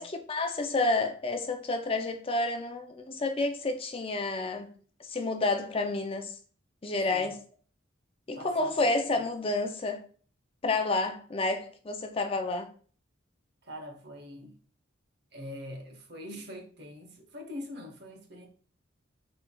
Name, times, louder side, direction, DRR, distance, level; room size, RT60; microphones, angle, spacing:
voice 1, 0.0-4.7 5.1-6.3 6.8-7.4 8.3-10.0 10.6-12.7, left 2 dB, 25° left, 0.4 m, -30 dB
voice 2, 8.3-8.7 9.1-9.2 13.6-14.6 15.3-18.5, left 1 dB, 55° right, 0.9 m, -43 dB
6.8 x 3.3 x 2.3 m
head